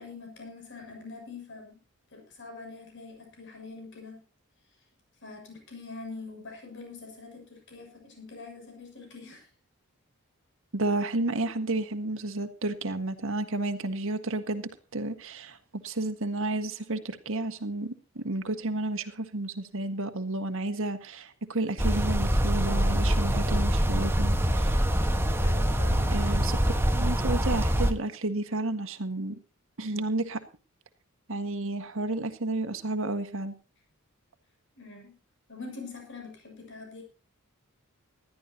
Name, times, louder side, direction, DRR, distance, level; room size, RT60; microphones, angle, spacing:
voice 1, 0.0-1.8 2.1-4.2 5.2-9.5 25.4-26.2 34.8-35.2 35.5-37.0, left 3 dB, 55° left, 2 dB, 7.0 m, -44 dB
voice 2, 10.7-24.7 26.1-29.4 29.8-30.4 31.3-33.5, right 2 dB, 60° right, 8 dB, 1.7 m, -31 dB
sound 1, 21.8-27.9, equal, 10° right, 1.4 m, -25 dB
20.0 x 13.0 x 2.9 m, 0.31 s
head